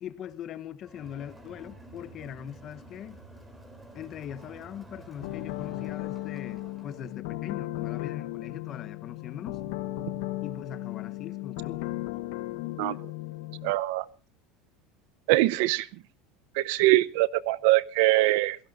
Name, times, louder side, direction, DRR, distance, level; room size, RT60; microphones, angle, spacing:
voice 1, 0.0-3.2 3.9-9.6 10.4-11.9, left 10 dB, 35° left, 1.2 m, -41 dB
Crowd, 0.8-7.1, right 1 dB, 10° right, 3.5 m, -50 dB
sound 1, 5.2-13.7, left 16 dB, 75° left, 1.2 m, -36 dB
voice 2, 13.6-14.0 15.3-15.9 16.6-18.6, right 18 dB, 70° right, 0.7 m, -23 dB
28.0 x 17.0 x 2.6 m
cardioid pair, 160°, 0 cm